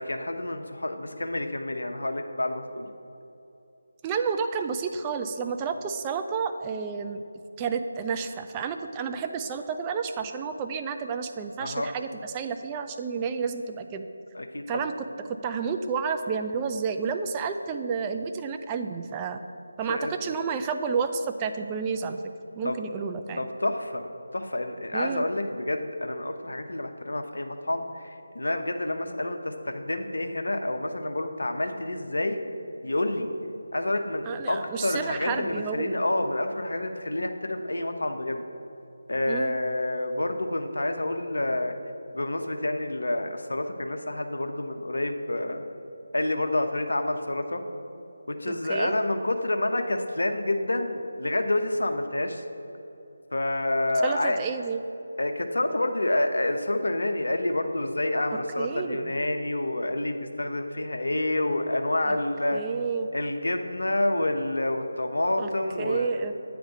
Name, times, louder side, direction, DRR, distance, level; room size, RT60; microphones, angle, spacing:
voice 1, 0.0-2.9 11.6-11.9 14.3-14.9 19.9-20.1 22.6-22.8 23.4-32.4 32.8-33.3 33.7-38.4 39.1-41.8 42.1-45.7 46.1-47.6 48.3-52.4 53.3-54.4 55.2-62.6 63.1-66.2, left 1 dB, 70° left, 5 dB, 0.7 m, -28 dB
voice 2, 4.0-7.2 7.6-14.1 14.7-15.1 15.4-19.4 19.8-22.2 22.6-23.5 24.9-25.3 34.3-36.0 39.3-39.5 48.5-48.9 54.0-54.8 58.6-59.1 62.0-62.2 62.5-63.1 65.4-65.5 65.8-66.3, right 5 dB, 15° right, 6 dB, 0.3 m, -30 dB
8.6 x 3.4 x 6.6 m, 2.8 s
figure-of-eight pair, 160°, 0 cm